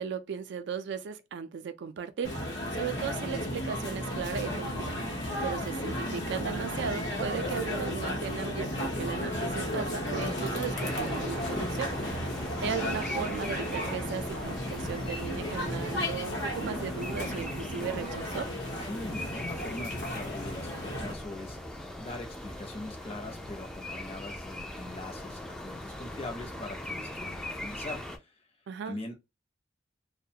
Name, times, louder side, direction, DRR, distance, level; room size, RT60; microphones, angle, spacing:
voice 1, 0.0-5.0 5.4-11.9 12.6-18.5 28.7-29.0, right 6 dB, 65° right, 0.4 m, -36 dB
sound 1, 2.2-21.1, left 1 dB, 80° left, 0.8 m, -34 dB
sound 2, 10.7-28.2, left 1 dB, 5° left, 0.4 m, -41 dB
voice 2, 18.8-21.6 22.0-28.3 28.8-29.2, left 2 dB, 35° left, 0.7 m, -41 dB
2.4 x 2.1 x 2.7 m
head